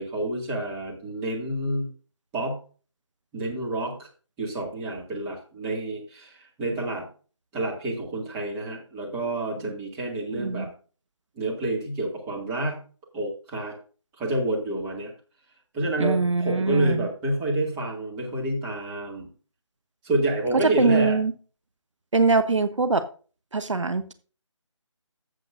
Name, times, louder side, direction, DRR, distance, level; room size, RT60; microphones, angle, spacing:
voice 1, 0.0-1.9 2.3-2.6 3.3-4.1 4.4-7.1 7.5-10.7 11.4-12.8 13.1-13.8 14.2-15.1 15.7-19.3 20.0-21.2, right 1 dB, 10° right, -3 dB, 2.0 m, -28 dB
voice 2, 10.3-10.7 16.0-17.1 20.8-21.3 22.1-23.0 23.5-24.1, right 3 dB, 70° right, 10 dB, 0.9 m, -23 dB
14.0 x 7.6 x 2.6 m, 0.38 s
figure-of-eight pair, 160°, 16 cm